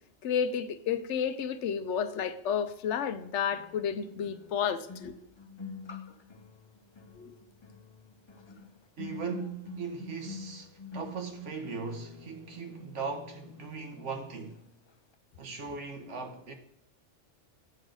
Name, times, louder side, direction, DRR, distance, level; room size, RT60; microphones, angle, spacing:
voice 1, 0.2-5.2 7.2-7.4, left 7 dB, 80° left, 0.9 m, -31 dB
sound 1, 2.1-2.2 3.5-14.6 14.9-15.1, left 5 dB, 45° left, 0.3 m, -48 dB
voice 2, 9.0-14.7 15.4-16.5, right 5 dB, 85° right, 1.4 m, -39 dB
7.8 x 3.8 x 6.3 m
omnidirectional pair, 1.2 m